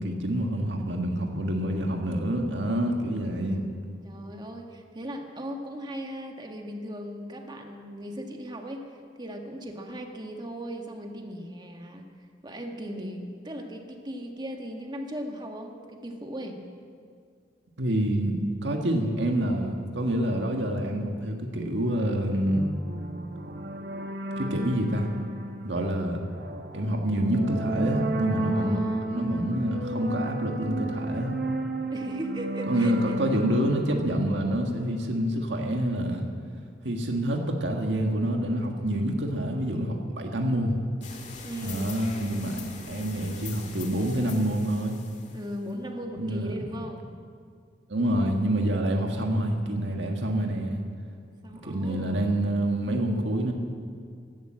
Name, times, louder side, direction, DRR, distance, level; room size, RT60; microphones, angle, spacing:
voice 1, 0.0-3.6 17.8-22.6 24.4-25.1 25.6-26.2 26.7-31.3 32.7-36.3 36.8-40.8 41.6-42.6 42.9-45.0 46.2-46.5 47.9-50.8 51.6-53.5, right 1 dB, 85° right, 2 dB, 1.7 m, -27 dB
voice 2, 4.0-8.9 9.2-12.0 12.4-16.6 28.5-29.1 31.9-33.1 41.4-41.9 45.3-47.1 48.8-49.3 51.1-52.3, equal, 25° right, 3 dB, 1.6 m, -38 dB
sound 1, 22.4-34.9, right 2 dB, 60° right, 1.2 m, -33 dB
sound 2, 41.0-45.7, left 5 dB, 40° left, 1.9 m, -43 dB
15.5 x 12.0 x 7.6 m, 2.2 s
head